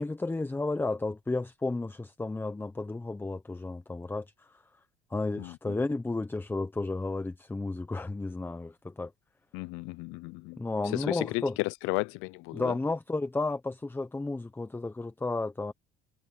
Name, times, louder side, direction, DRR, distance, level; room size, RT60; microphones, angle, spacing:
voice 1, 0.0-4.6 5.1-9.1 10.6-11.6 12.5-15.7, left 2 dB, 10° left, 0.9 m, -32 dB
voice 2, 5.4-5.8 9.5-12.8, left 23 dB, 75° left, 0.5 m, -34 dB
cardioid pair, 115°, 21 cm